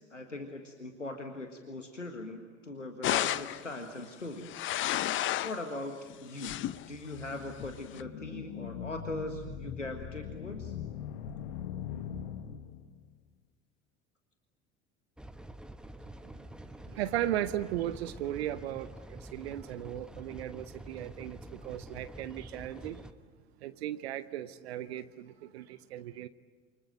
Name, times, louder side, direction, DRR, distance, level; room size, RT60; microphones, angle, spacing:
voice 1, 0.0-4.6 5.4-6.6 6.9-10.8, left 2 dB, 85° left, 5 dB, 1.7 m, -40 dB
sound 1, 3.0-3.6 4.3-5.6 6.1-6.9 7.6-8.0, left 13 dB, 35° left, 0.9 m, -31 dB
sound 2, 6.7-13.1, left 9 dB, 55° left, 1.6 m, -41 dB
sound 3, 15.2-23.1, right 1 dB, ahead, 1.1 m, -47 dB
voice 2, 16.9-23.0 23.6-26.3, right 12 dB, 60° right, 13 dB, 1.0 m, -36 dB
28.5 x 25.5 x 7.9 m, 1.5 s
figure-of-eight pair, 75°, 36 cm